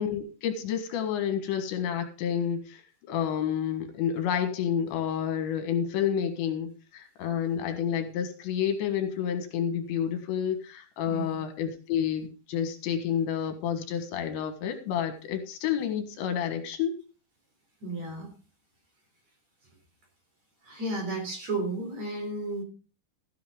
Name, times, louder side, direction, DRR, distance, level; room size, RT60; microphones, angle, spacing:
voice 1, 0.0-2.8 3.1-17.0, left 8 dB, 80° left, 7 dB, 3.9 m, -29 dB
voice 2, 11.1-11.4 17.8-18.3 20.6-22.6, right 2 dB, 40° right, 3 dB, 4.6 m, -33 dB
13.5 x 10.0 x 3.7 m, 0.34 s
omnidirectional pair, 5.1 m